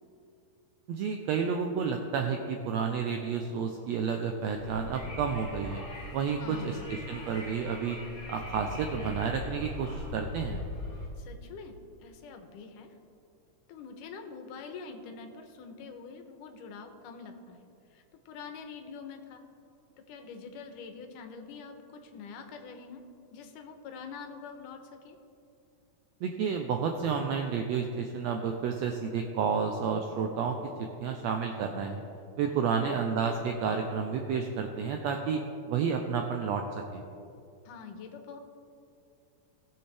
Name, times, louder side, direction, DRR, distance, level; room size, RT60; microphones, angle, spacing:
voice 1, 0.9-5.8 6.1-8.0 8.3-10.6 26.2-30.6 31.0-32.0 32.4-35.4 35.7-36.6 36.9-37.0, right 6 dB, 80° right, 4 dB, 1.5 m, -30 dB
Wind, 4.4-11.1, left 2 dB, 30° left, 2.6 m, -41 dB
voice 2, 6.4-6.9 11.2-11.8 12.0-12.9 13.7-19.4 20.0-23.0 23.3-25.2 32.8-33.0 37.7-38.4, left 5 dB, 85° left, 6 dB, 2.4 m, -45 dB
19.0 x 7.0 x 3.4 m, 2.6 s
omnidirectional pair, 3.6 m